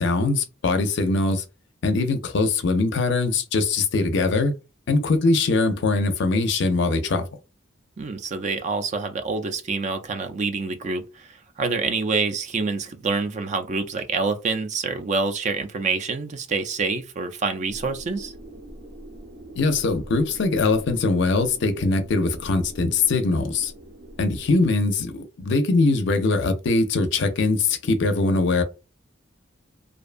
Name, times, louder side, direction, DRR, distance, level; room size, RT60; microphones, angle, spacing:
voice 1, 0.0-1.4 1.8-4.5 4.9-7.3 19.6-23.7 24.2-28.6, left 3 dB, 65° left, 0.5 m, -22 dB
voice 2, 8.0-18.3, right 4 dB, 40° right, 0.4 m, -27 dB
sound 1, 17.7-24.5, right 1 dB, 70° right, 0.7 m, -42 dB
2.5 x 2.2 x 2.4 m
head